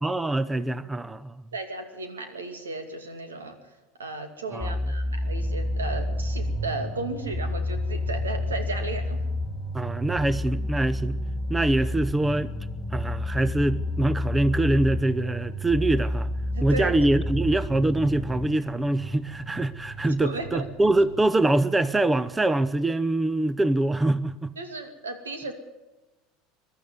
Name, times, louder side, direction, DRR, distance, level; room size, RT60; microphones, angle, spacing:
voice 1, 0.0-1.4 4.5-4.8 9.7-11.2 11.5-12.5 12.9-16.3 16.6-24.5, right 2 dB, 15° right, 0.8 m, -24 dB
voice 2, 1.5-3.6 4.0-9.2 16.5-17.0 20.2-20.6 24.6-25.5, right 3 dB, 80° right, 2.5 m, -34 dB
sound 1, 4.6-18.5, left 1 dB, 5° left, 2.5 m, -30 dB
sound 2, 5.2-21.2, right 3 dB, 45° right, 6.4 m, -41 dB
22.5 x 12.0 x 9.5 m
figure-of-eight pair, 75°, 0 cm